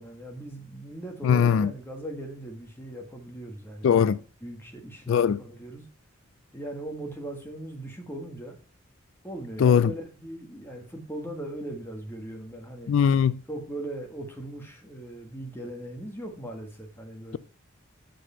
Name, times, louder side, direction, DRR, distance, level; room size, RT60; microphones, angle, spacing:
voice 1, 0.0-5.8 6.5-8.6 9.2-12.9 13.5-17.4, right 1 dB, 10° left, 1.5 m, -39 dB
voice 2, 1.2-1.7 3.8-4.2 5.1-5.4 9.6-9.9 12.9-13.4, left 7 dB, 75° left, 0.3 m, -20 dB
7.7 x 5.0 x 5.5 m
head